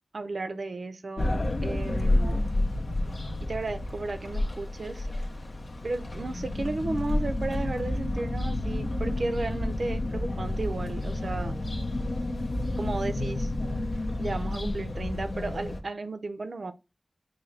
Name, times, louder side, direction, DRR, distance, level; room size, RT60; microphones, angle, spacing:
voice 1, 0.1-2.5 3.4-5.1 5.8-11.5 12.8-13.5 14.2-16.7, right 3 dB, 90° right, 0.4 m, -34 dB
sound 1, 1.2-15.8, left 1 dB, 80° left, 0.6 m, -30 dB
3.7 x 2.6 x 3.2 m
wide cardioid pair, 65°, 0 cm